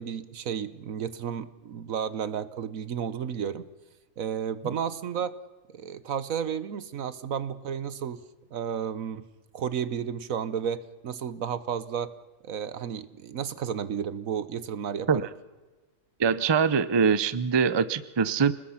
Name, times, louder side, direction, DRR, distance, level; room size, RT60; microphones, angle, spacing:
voice 1, 0.0-3.7 4.2-5.4 5.7-8.2 8.5-9.2 9.5-12.1 12.4-15.1, right 8 dB, 70° right, 14 dB, 1.4 m, -32 dB
voice 2, 16.2-18.5, right 6 dB, 30° right, 15 dB, 0.5 m, -23 dB
28.5 x 20.0 x 5.7 m, 1.2 s
omnidirectional pair, 1.5 m